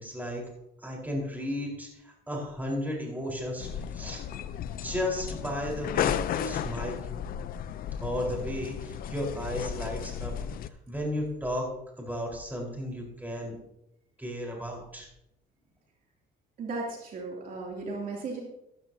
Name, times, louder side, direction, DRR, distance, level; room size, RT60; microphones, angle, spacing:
voice 1, 0.0-0.4 0.8-4.2 4.8-7.0 8.0-10.5 10.9-11.7 12.0-13.5 14.2-15.1, left 1 dB, 10° right, -1 dB, 4.5 m, -34 dB
sound 1, 3.6-10.7, left 9 dB, 60° left, 0.6 m, -34 dB
voice 2, 16.6-18.4, right 3 dB, 55° right, -2 dB, 3.0 m, -35 dB
14.0 x 13.5 x 2.9 m, 0.83 s
cardioid pair, 110°, 17 cm